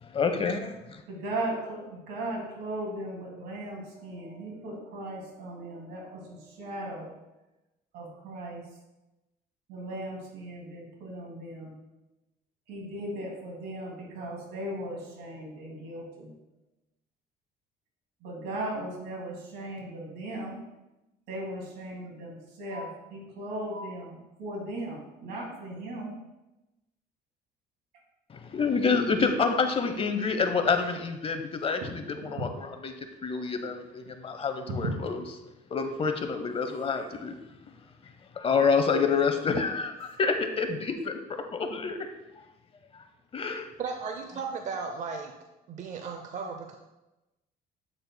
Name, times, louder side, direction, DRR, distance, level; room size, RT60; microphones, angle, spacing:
voice 1, 0.0-1.0 28.3-32.9 33.2-35.2 35.7-37.3 38.3-42.0 42.9-43.0 43.3-43.7, left 5 dB, 35° left, 7 dB, 0.7 m, -28 dB
voice 2, 1.1-7.2 7.9-8.6 9.7-11.7 12.7-16.3 18.2-20.6 21.3-26.1 31.8-32.4 34.7-35.0, right 1 dB, 90° right, -2 dB, 2.4 m, -37 dB
voice 3, 43.8-45.3 45.7-46.7, right 5 dB, 45° right, 4 dB, 0.7 m, -35 dB
8.6 x 6.5 x 2.2 m, 0.99 s
cardioid pair, 110°, 17 cm